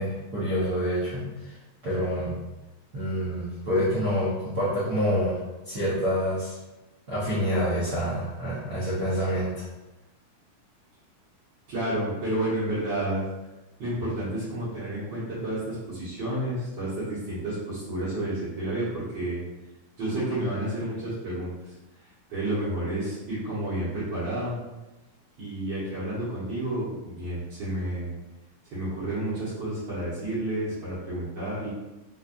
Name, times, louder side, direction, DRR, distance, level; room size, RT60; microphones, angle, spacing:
voice 1, 0.0-1.5 1.8-2.4 2.9-6.6 7.1-9.6, equal, 80° right, -10 dB, 0.8 m, -27 dB
voice 2, 11.7-13.2 13.8-19.4 20.0-21.7 22.3-24.6 25.4-28.1 28.6-31.7, right 1 dB, 60° right, -11 dB, 1.2 m, -30 dB
4.3 x 3.4 x 2.5 m, 1.1 s
omnidirectional pair, 3.4 m